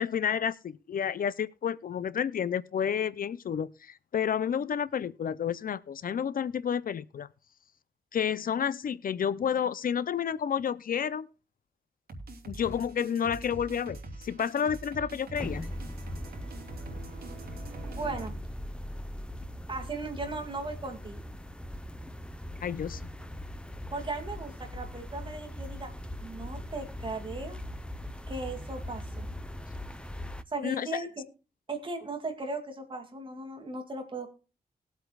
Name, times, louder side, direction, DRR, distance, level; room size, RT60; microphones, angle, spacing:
voice 1, 0.0-7.3 8.1-11.3 12.5-15.7 22.6-23.1 30.6-31.0, left 8 dB, 65° left, 0.5 m, -30 dB
sound 1, 12.1-18.3, right 2 dB, 85° right, 3.1 m, -43 dB
sound 2, 15.3-30.4, left 1 dB, 5° left, 0.7 m, -40 dB
voice 2, 17.9-18.3 19.7-21.2 23.9-25.9 26.2-27.6 28.3-29.3 30.5-31.2 31.7-34.3, right 3 dB, 35° right, 2.5 m, -37 dB
20.0 x 8.0 x 2.3 m
wide cardioid pair, 165°, 16 cm